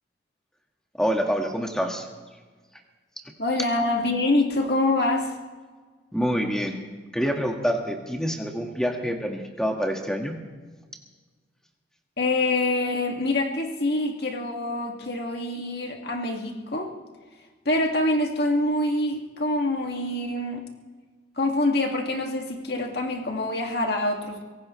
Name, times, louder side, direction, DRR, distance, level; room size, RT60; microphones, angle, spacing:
voice 1, 1.0-2.1 6.1-6.8 7.1-10.4, equal, 5° left, 2 dB, 1.7 m, -26 dB
voice 2, 3.4-5.4 12.2-16.9 17.7-20.6 21.4-24.4, left 2 dB, 60° left, 1 dB, 2.2 m, -25 dB
24.5 x 17.5 x 3.2 m, 1.4 s
head